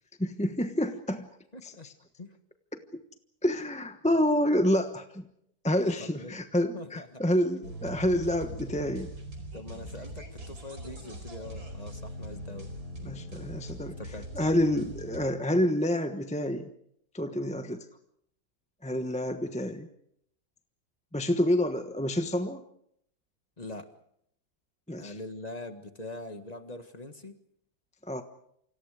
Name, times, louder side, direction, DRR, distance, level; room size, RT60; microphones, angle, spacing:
voice 1, 0.2-1.3 1.6-1.7 2.9-3.0 3.4-5.3 5.6-9.1 13.0-14.0 14.4-16.7 17.1-17.9 18.8-19.9 21.1-22.6 24.9-25.1 28.1-28.2, left 1 dB, 5° left, 7 dB, 1.0 m, -28 dB
voice 2, 1.5-1.9 2.2-2.3 5.8-6.4 6.7-7.2 9.5-12.7 13.0-13.5 14.0-14.3 23.6-23.9 25.0-27.3, left 2 dB, 25° left, 8 dB, 1.7 m, -43 dB
sound 1, 7.6-15.3, equal, 75° right, 5.2 m, -41 dB
28.5 x 26.0 x 5.0 m, 0.71 s
omnidirectional pair, 1.7 m